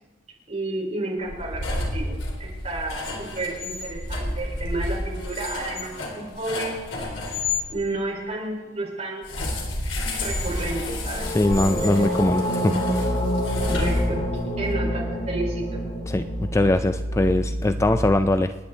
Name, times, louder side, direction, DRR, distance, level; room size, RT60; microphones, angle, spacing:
voice 1, 0.5-6.8 7.7-9.2 10.2-11.9 13.6-14.3 14.6-15.6, right 2 dB, 35° right, -3 dB, 4.6 m, -31 dB
sound 1, 1.2-7.6 9.2-14.5, left 2 dB, 75° left, 3.7 m, -31 dB
sound 2, 4.7-5.9 11.1-18.0, equal, 50° left, 4.2 m, -27 dB
voice 2, 11.3-13.1 16.1-18.5, left 2 dB, 15° left, 10 dB, 0.4 m, -22 dB
28.0 x 10.0 x 4.0 m, 1.4 s
head